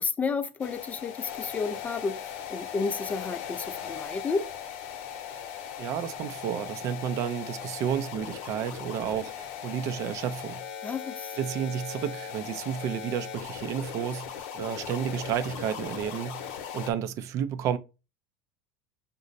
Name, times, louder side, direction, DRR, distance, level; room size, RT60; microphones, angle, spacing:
voice 1, 0.0-4.4 10.8-11.3, left 4 dB, 20° left, 0.4 m, -31 dB
sound 1, 0.6-16.9, left 8 dB, 70° left, 0.8 m, -39 dB
voice 2, 5.8-10.6 11.3-17.8, right 9 dB, 50° right, 0.4 m, -31 dB
5.2 x 2.1 x 4.0 m
supercardioid pair, 110°, 7 cm